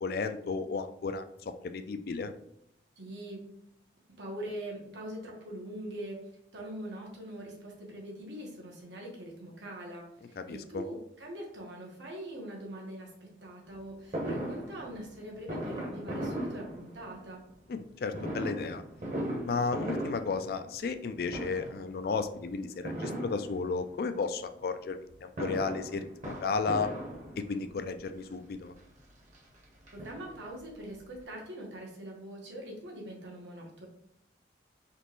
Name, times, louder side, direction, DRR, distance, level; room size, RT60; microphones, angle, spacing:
voice 1, 0.0-2.3 10.4-10.8 17.7-18.8 19.4-26.9 27.4-28.7, left 4 dB, 55° left, 9 dB, 0.3 m, -33 dB
voice 2, 3.0-3.4 4.2-17.4 29.9-33.9, right 1 dB, 85° right, -1 dB, 1.3 m, -43 dB
Fireworks, 14.1-17.3 18.1-21.0 21.3-21.9 22.8-23.9 25.1-27.7 28.5-28.6 28.9-29.0 29.3-30.6 30.9-31.0 31.2-31.3, right 1 dB, 40° right, 1.0 m, -38 dB
4.3 x 3.1 x 3.0 m, 0.78 s
head